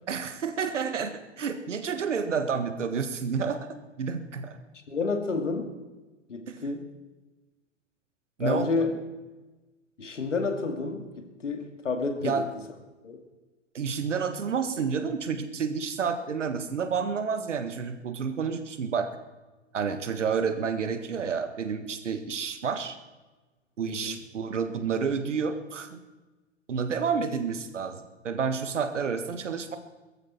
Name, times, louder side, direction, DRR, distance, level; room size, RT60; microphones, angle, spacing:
voice 1, 0.1-3.7 4.0-4.6 6.5-6.6 8.4-8.7 12.2-12.5 13.7-19.1 19.7-22.9 23.8-26.0 26.7-29.8, right 6 dB, 75° right, 9 dB, 1.7 m, -30 dB
voice 2, 4.9-5.7 6.3-6.9 8.4-8.9 10.0-12.5 13.0-13.2 23.8-24.2, left 3 dB, 80° left, 5 dB, 2.3 m, -30 dB
22.5 x 14.0 x 4.4 m, 1.2 s
figure-of-eight pair, 100°, 36 cm